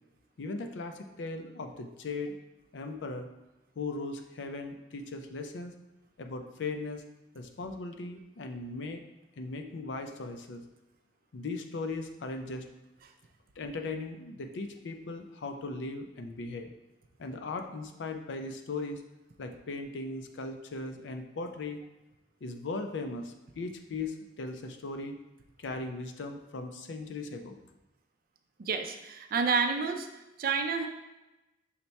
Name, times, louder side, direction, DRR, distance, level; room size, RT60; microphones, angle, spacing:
voice 1, 0.4-2.4 2.7-3.3 3.8-5.7 6.2-7.0 7.3-9.0 9.4-10.6 11.3-12.6 13.6-16.7 17.2-19.0 19.4-21.8 22.4-25.1 25.6-27.6, left 3 dB, 90° left, 6 dB, 0.5 m, -38 dB
voice 2, 28.6-30.1 30.4-30.9, right 5 dB, 55° right, 6 dB, 0.4 m, -29 dB
5.7 x 2.2 x 4.0 m, 1.0 s
head